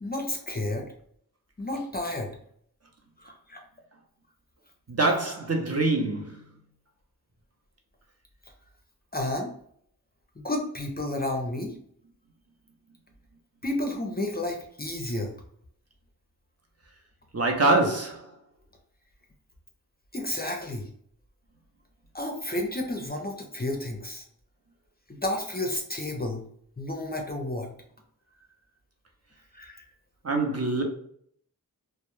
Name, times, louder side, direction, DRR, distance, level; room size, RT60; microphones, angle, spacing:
voice 1, 0.0-0.9 1.6-2.3 3.2-3.6 9.1-9.5 10.4-11.7 13.6-15.3 20.1-20.9 22.1-24.2 25.1-26.4 26.8-27.7 29.5-29.9, left 1 dB, 25° left, 0.5 m, -31 dB
voice 2, 4.9-6.4 17.3-18.3 30.2-30.8, right 2 dB, 40° right, 0.6 m, -24 dB
2.1 x 2.1 x 3.0 m
wide cardioid pair, 45°, 37 cm